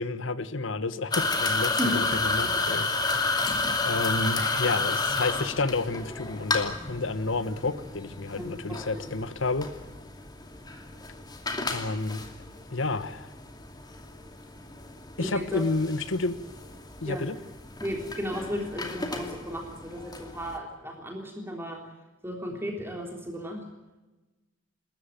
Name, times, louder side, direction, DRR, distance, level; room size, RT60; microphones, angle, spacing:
voice 1, 0.0-3.4 3.8-9.7 11.7-12.3 12.7-13.3 15.2-16.4 17.0-17.4, left 3 dB, 80° left, 13 dB, 1.3 m, -30 dB
sound 1, 1.1-20.6, left 3 dB, 20° left, 2.6 m, -32 dB
voice 2, 8.3-9.0 15.2-15.6 17.1-17.3 17.8-21.8 22.2-23.6, equal, 10° right, 1 dB, 3.5 m, -34 dB
27.5 x 14.0 x 9.3 m, 1.1 s
head